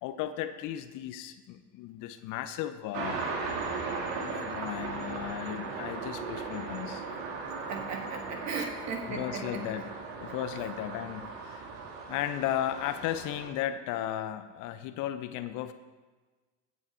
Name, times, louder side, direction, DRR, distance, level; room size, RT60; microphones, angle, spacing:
voice 1, 0.0-3.2 4.2-7.0 8.6-8.7 9.1-9.9 10.2-11.6 12.1-15.7, left 11 dB, 55° left, 11 dB, 0.9 m, -35 dB
sound 1, 2.9-13.5, right 4 dB, 65° right, 2.0 m, -37 dB
voice 2, 7.7-9.9, right 4 dB, 50° right, 2 dB, 2.2 m, -37 dB
15.5 x 6.6 x 4.5 m, 1.3 s
hypercardioid pair, 65°, 36 cm